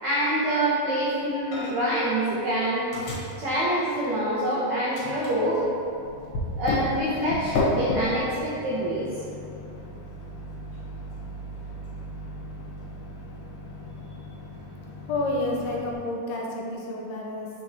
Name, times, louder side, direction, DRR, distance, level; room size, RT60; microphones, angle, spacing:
voice 1, 0.0-2.9 3.4-5.7 6.6-9.1, right 1 dB, 90° right, -8 dB, 1.5 m, -26 dB
Microwave oven, 1.5-2.0 2.3-4.5 4.9-15.9, left 2 dB, 65° left, 2.4 m, -34 dB
voice 2, 15.1-17.5, left 2 dB, 85° left, -1 dB, 2.5 m, -29 dB
6.0 x 5.9 x 3.0 m, 2.6 s
omnidirectional pair, 4.6 m